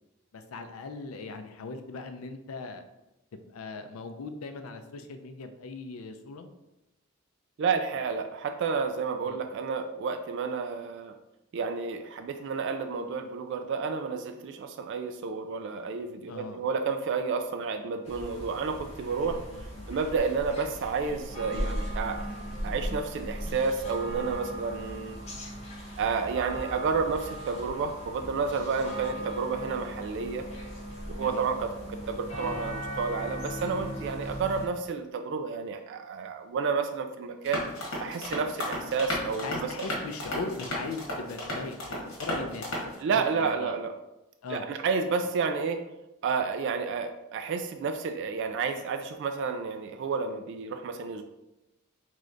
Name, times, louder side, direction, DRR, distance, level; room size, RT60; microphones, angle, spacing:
voice 1, 0.3-2.8 3.3-6.5 9.3-9.4 16.3-16.6 19.3-19.9 28.8-29.2 31.2-31.5 39.4-43.8 44.4-44.7, left 3 dB, 90° left, 8 dB, 0.5 m, -40 dB
voice 2, 7.6-11.2 11.5-19.4 19.9-22.3 22.6-25.2 26.0-30.5 31.1-37.6 38.0-39.9 43.0-43.9 44.5-45.8 46.2-51.2, right 5 dB, 60° right, 6 dB, 0.3 m, -30 dB
sound 1, 18.0-34.7, equal, 30° left, 1.2 m, -38 dB
sound 2, 37.4-42.9, left 1 dB, 70° left, 1.5 m, -34 dB
3.7 x 3.2 x 3.8 m, 0.96 s
head